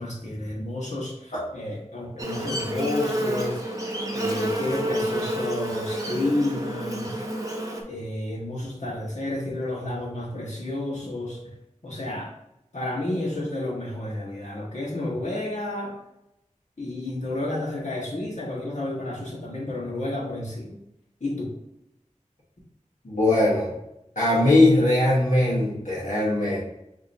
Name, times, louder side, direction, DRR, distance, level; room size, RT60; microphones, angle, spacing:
voice 1, 0.0-3.6 4.1-7.2 7.9-11.4 11.8-12.3 12.7-15.9 16.8-20.7 21.2-21.5, left 1 dB, 65° left, -5 dB, 1.5 m, -31 dB
Buzz, 2.2-7.8, right 1 dB, 25° right, 0.9 m, -29 dB
voice 2, 23.0-23.7 24.1-26.6, left 1 dB, 90° left, -7 dB, 1.3 m, -20 dB
6.3 x 3.0 x 2.7 m, 0.84 s
wide cardioid pair, 45°, 13 cm